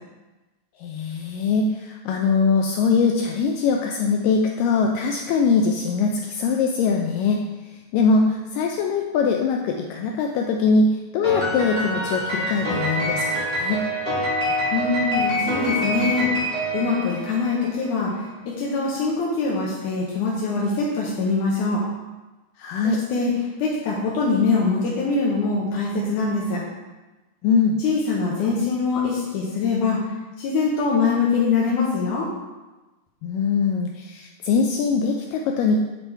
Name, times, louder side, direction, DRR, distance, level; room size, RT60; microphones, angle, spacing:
voice 1, 0.8-7.4 7.9-13.8 22.6-23.0 27.4-27.8 33.2-35.8, left 4 dB, 90° left, 2 dB, 1.9 m, -22 dB
Piano, 11.2-17.8, equal, 20° left, 1.8 m, -26 dB
voice 2, 14.7-16.3 16.7-18.1 18.5-21.8 22.8-23.3 23.6-26.6 27.8-30.0 30.4-32.3, left 4 dB, 70° left, -4 dB, 2.0 m, -23 dB
9.3 x 4.3 x 4.5 m, 1.1 s
omnidirectional pair, 4.4 m